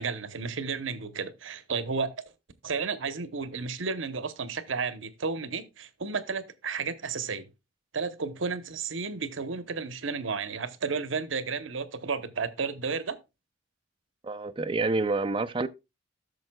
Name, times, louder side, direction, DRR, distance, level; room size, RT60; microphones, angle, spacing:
voice 1, 0.0-2.1 2.6-7.5 7.9-13.2, right 5 dB, 80° right, 0.9 m, -32 dB
voice 2, 14.2-15.7, right 3 dB, 25° right, 0.5 m, -28 dB
13.5 x 6.5 x 2.2 m
head